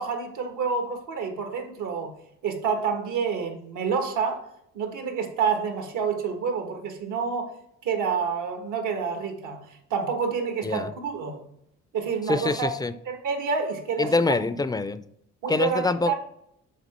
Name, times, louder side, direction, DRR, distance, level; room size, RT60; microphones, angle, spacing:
voice 1, 0.0-2.1 2.4-4.5 4.7-7.5 7.8-11.4 11.9-12.7 13.0-14.5 15.4-16.1, right 6 dB, 80° right, 5 dB, 1.4 m, -28 dB
voice 2, 12.3-12.9 14.0-15.0 15.5-16.1, left 3 dB, 15° left, 14 dB, 0.4 m, -25 dB
7.4 x 3.9 x 4.2 m, 0.74 s
cardioid pair, 90°, 30 cm